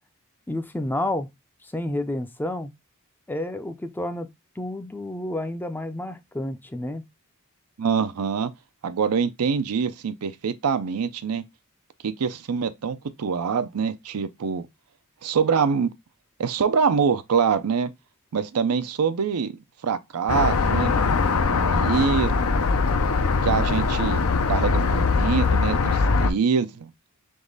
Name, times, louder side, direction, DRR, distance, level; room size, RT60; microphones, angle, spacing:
voice 1, 0.5-1.3 1.6-2.7 3.3-4.3 4.6-7.1, left 1 dB, 10° left, 0.4 m, -30 dB
voice 2, 7.8-8.5 8.8-11.4 12.0-14.7 15.2-15.9 16.4-17.9 18.3-19.5 19.8-21.0 21.5-22.4 23.4-24.2 24.5-26.9, right 6 dB, 90° right, 0.5 m, -24 dB
sound 1, 20.3-26.3, left 4 dB, 70° left, 0.6 m, -21 dB
3.7 x 3.1 x 3.7 m
head